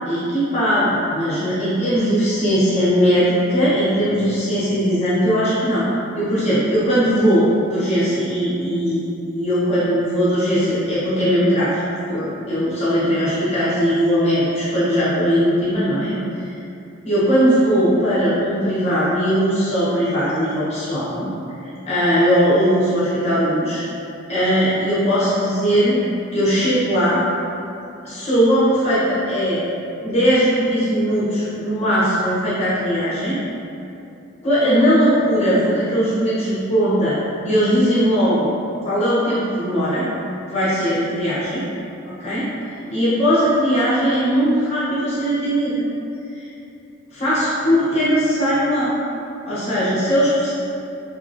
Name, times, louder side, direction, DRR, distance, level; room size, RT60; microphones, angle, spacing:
voice 1, 0.0-5.9 6.1-11.8 12.1-16.2 16.4-16.6 17.0-21.3 21.6-23.8 24.3-26.0 26.3-27.2 28.0-29.6 30.0-33.4 34.4-37.2 37.4-38.5 38.8-40.1 40.5-41.6 42.0-42.5 42.9-45.9 46.3-46.5 47.1-48.9 49.5-50.5, equal, 30° left, -11 dB, 0.8 m, -19 dB
3.0 x 2.8 x 2.5 m, 2.8 s
head